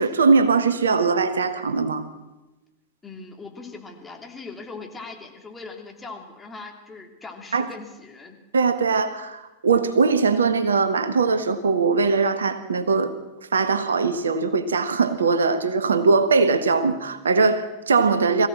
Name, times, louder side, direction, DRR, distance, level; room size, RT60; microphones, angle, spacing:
voice 1, 0.0-2.0 7.5-7.7 8.5-13.1 13.5-18.5, right 4 dB, 70° right, 11 dB, 1.3 m, -21 dB
voice 2, 3.0-8.4, left 3 dB, 15° left, 2 dB, 3.2 m, -40 dB
22.5 x 15.5 x 7.5 m, 1.0 s
figure-of-eight pair, 90°, 0 cm